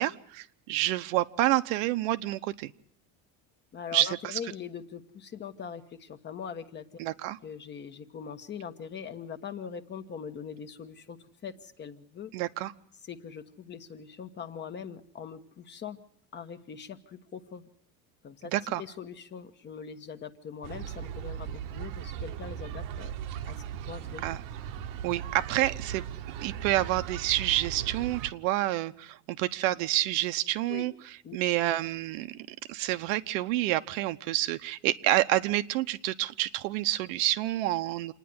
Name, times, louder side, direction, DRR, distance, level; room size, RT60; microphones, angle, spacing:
voice 1, 0.0-2.7 3.9-4.4 7.0-7.4 12.3-12.7 18.5-18.8 24.2-24.4 25.0-26.0 26.4-30.9 31.3-38.1, right 15 dB, 85° right, 11 dB, 1.0 m, -28 dB
voice 2, 3.7-6.8 7.4-12.3 13.0-16.0 16.3-17.6 18.2-23.1 23.4-23.6 23.9-24.2 30.7-30.9 31.2-31.4, left 7 dB, 25° left, 9 dB, 1.2 m, -42 dB
sound 1, 20.6-28.3, right 9 dB, 60° right, 1.0 m, -38 dB
27.0 x 10.0 x 9.6 m, 0.67 s
cardioid pair, 145°, 39 cm